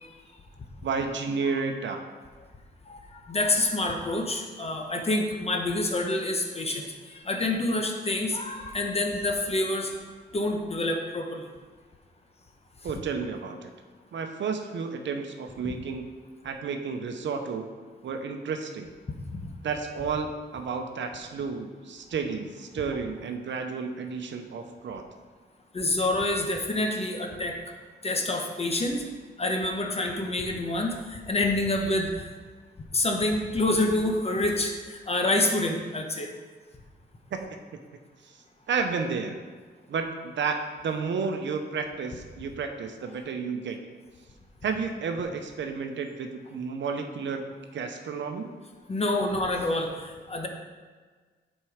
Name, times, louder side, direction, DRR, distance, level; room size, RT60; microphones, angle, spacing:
voice 1, 0.8-2.0 12.8-13.7 14.1-16.1 16.4-17.7 18.0-18.9 19.6-25.0 37.3-37.5 38.2-38.4 38.7-39.4 39.9-43.8 44.6-47.5 47.7-48.5, right 5 dB, 80° right, 5 dB, 0.8 m, -31 dB
voice 2, 2.9-9.9 10.3-11.5 15.6-15.7 25.7-27.6 28.0-29.1 29.4-32.3 32.9-36.3 48.9-50.5, left 2 dB, 35° left, 2 dB, 1.0 m, -27 dB
7.5 x 4.5 x 5.0 m, 1.5 s
wide cardioid pair, 105°, 19 cm